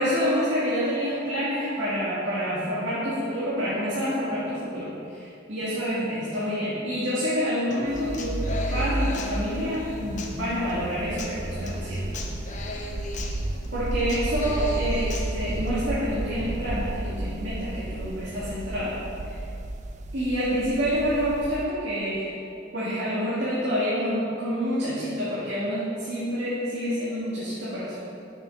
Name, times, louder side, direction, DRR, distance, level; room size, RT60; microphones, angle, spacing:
voice 1, 0.0-12.1 13.7-19.0 19.2-19.4 20.1-22.3 22.7-28.1, equal, 65° right, -9 dB, 2.1 m, -28 dB
Human voice / Acoustic guitar, 7.7-15.7, left 3 dB, 40° left, 0.9 m, -38 dB
sound 1, 7.9-21.6, right 1 dB, 40° right, 0.5 m, -32 dB
7.3 x 6.6 x 6.5 m, 2.5 s
head